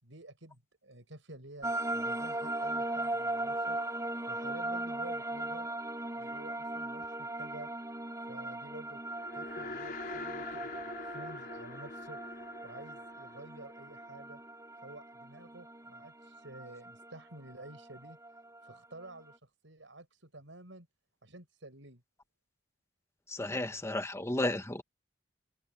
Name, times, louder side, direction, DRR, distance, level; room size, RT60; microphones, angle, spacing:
voice 1, 0.0-3.8 4.3-5.7 6.1-7.7 8.3-9.0 9.3-12.4 12.6-14.4 14.8-18.2 18.6-20.9 21.2-22.0, right 2 dB, 80° right, 5.9 m, -50 dB
sound 1, 1.6-19.4, right 2 dB, 15° right, 5.5 m, -39 dB
sound 2, 9.0-14.5, left 3 dB, 50° left, 4.6 m, -45 dB
voice 2, 23.3-24.8, left 1 dB, 15° left, 1.4 m, -33 dB
head